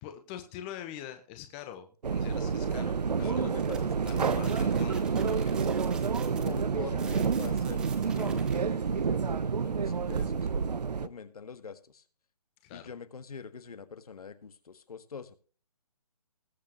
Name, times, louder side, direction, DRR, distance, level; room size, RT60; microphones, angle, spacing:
voice 1, 0.0-3.5 4.0-5.7 12.6-12.9, left 10 dB, 15° left, 7 dB, 1.1 m, -44 dB
sound 1, 2.0-11.1, right 5 dB, 85° right, 0.9 m, -29 dB
voice 2, 3.2-4.4 6.4-10.5 11.0-12.0 12.7-15.4, left 6 dB, 65° left, 12 dB, 1.7 m, -44 dB
sound 2, 3.6-8.6, right 5 dB, 5° right, 0.7 m, -47 dB
20.0 x 7.5 x 3.1 m, 0.39 s
hypercardioid pair, 165°, 20 cm